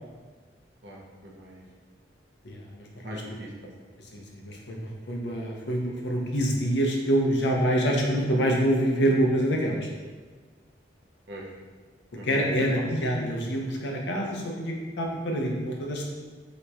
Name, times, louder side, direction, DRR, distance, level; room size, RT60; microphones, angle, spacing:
voice 1, 0.8-1.6 3.0-3.8 11.3-11.4 12.2-12.8, equal, 70° right, -2 dB, 0.7 m, -41 dB
voice 2, 2.4-3.2 4.1-9.9 12.2-16.1, equal, 65° left, 0 dB, 0.6 m, -26 dB
3.0 x 2.3 x 4.0 m, 1.4 s
head